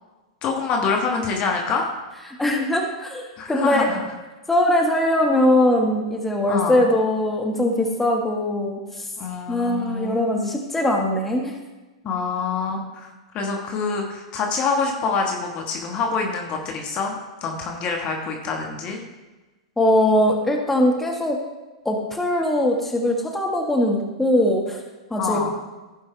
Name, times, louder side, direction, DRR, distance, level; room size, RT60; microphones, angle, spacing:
voice 1, 0.4-1.9 3.4-4.1 6.5-6.9 9.2-10.2 12.0-13.1 13.3-19.0 25.2-25.6, left 4 dB, 40° left, 1 dB, 1.5 m, -26 dB
voice 2, 2.4-3.9 4.5-9.0 9.5-11.5 19.8-21.4 21.9-24.8 25.1-25.4, left 1 dB, 5° left, 0 dB, 1.7 m, -21 dB
16.0 x 5.4 x 3.4 m, 1.2 s
hypercardioid pair, 105°, 3 cm